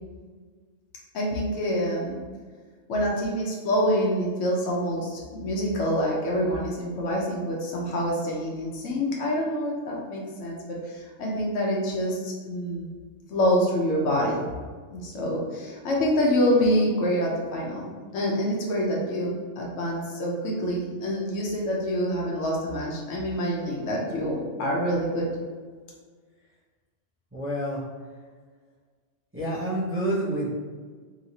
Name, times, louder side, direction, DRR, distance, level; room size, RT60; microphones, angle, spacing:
voice 1, 1.1-2.2 2.9-12.9 13.3-14.5 14.9-17.9 18.1-25.3, equal, 80° left, -3 dB, 1.0 m, -26 dB
voice 2, 27.3-27.8 29.3-30.5, right 1 dB, 15° right, -8 dB, 0.4 m, -28 dB
3.0 x 2.8 x 2.6 m, 1.5 s
omnidirectional pair, 1.3 m